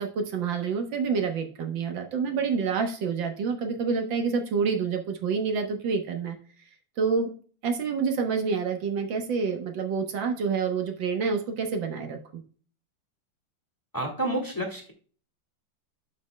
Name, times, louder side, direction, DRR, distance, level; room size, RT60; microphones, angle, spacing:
voice 1, 0.0-6.4 7.0-7.3 7.6-12.2, right 5 dB, 75° right, 5 dB, 1.8 m, -28 dB
voice 2, 13.9-14.9, right 1 dB, 10° left, 2 dB, 1.4 m, -29 dB
12.0 x 5.3 x 2.2 m, 0.42 s
omnidirectional pair, 2.1 m